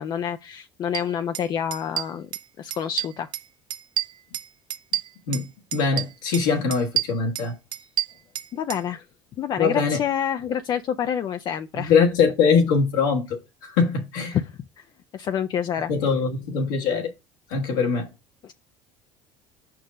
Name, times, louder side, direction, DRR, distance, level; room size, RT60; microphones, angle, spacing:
voice 1, 0.0-2.3 2.6-3.3 8.5-9.1 9.4-11.9 14.3-14.8 15.1-15.9 18.4-18.5, left 9 dB, 45° left, 0.4 m, -28 dB
sound 1, 0.9-1.0 1.3-1.5 1.7-2.5 2.7-3.4 3.7-5.5 5.7-6.4 6.7-8.8, right 11 dB, 50° right, 0.5 m, -29 dB
voice 2, 5.7-7.5 9.6-10.0 11.7-14.4 15.9-17.1 17.5-18.1, left 5 dB, 85° left, 1.4 m, -22 dB
5.1 x 4.6 x 5.1 m
supercardioid pair, 85°, 10 cm